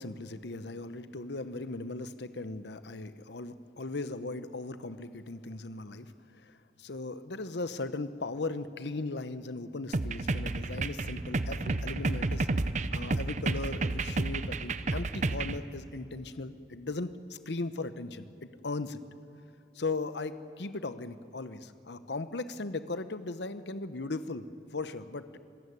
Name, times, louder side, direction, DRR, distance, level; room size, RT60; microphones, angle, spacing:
voice 1, 0.0-12.5 12.9-19.0 19.7-25.4, left 3 dB, 75° left, 12 dB, 0.9 m, -38 dB
sound 1, 9.9-15.6, right 2 dB, 40° right, 0.8 m, -31 dB
25.5 x 16.0 x 9.8 m, 2.7 s
head